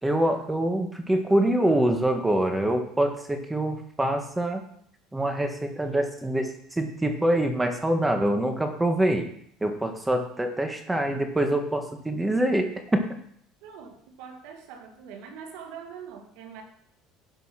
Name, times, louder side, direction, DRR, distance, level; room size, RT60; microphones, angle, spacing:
voice 1, 0.0-4.6 5.1-9.2 9.6-13.0, right 1 dB, 10° right, 5 dB, 1.5 m, -25 dB
voice 2, 13.6-16.6, right 7 dB, 80° right, 4 dB, 1.9 m, -43 dB
11.0 x 5.6 x 5.8 m, 0.65 s
supercardioid pair, 105°, 0 cm